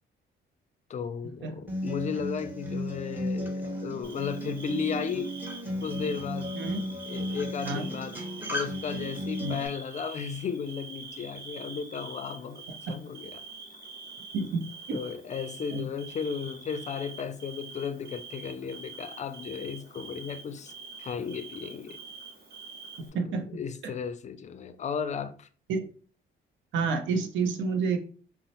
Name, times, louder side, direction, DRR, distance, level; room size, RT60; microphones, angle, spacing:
voice 1, 0.9-5.3 5.8-6.6 7.1-8.2 8.5-13.4 14.9-20.7 21.0-22.0 23.0-25.5, left 6 dB, 35° left, 0.4 m, -35 dB
Acoustic guitar, 1.7-9.7, equal, 10° right, 1.0 m, -35 dB
Bird / Cricket, 4.0-23.1, right 4 dB, 50° right, 1.4 m, -45 dB
voice 2, 14.3-15.0 15.7-15.9 23.1-23.5 23.8-23.9 25.7-25.9 26.7-28.0, right 4 dB, 70° right, 0.6 m, -29 dB
4.0 x 2.0 x 2.9 m
cardioid pair, 90°, 20 cm